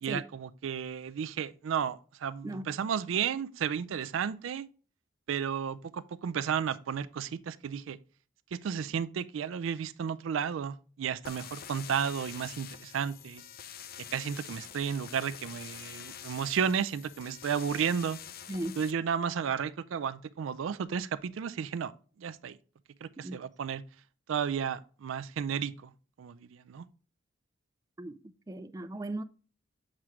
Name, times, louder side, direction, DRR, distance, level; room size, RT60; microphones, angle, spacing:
voice 1, 0.0-4.7 5.3-8.0 8.5-13.4 14.1-18.2 18.8-21.9 22.2-22.6 23.0-23.8 24.3-25.9 26.2-26.8, right 7 dB, 85° right, 0.4 m, -33 dB
sound 1, 11.2-18.9, left 9 dB, 50° left, 0.4 m, -46 dB
voice 2, 28.5-29.2, right 1 dB, 20° right, 0.3 m, -37 dB
7.4 x 4.8 x 3.1 m
head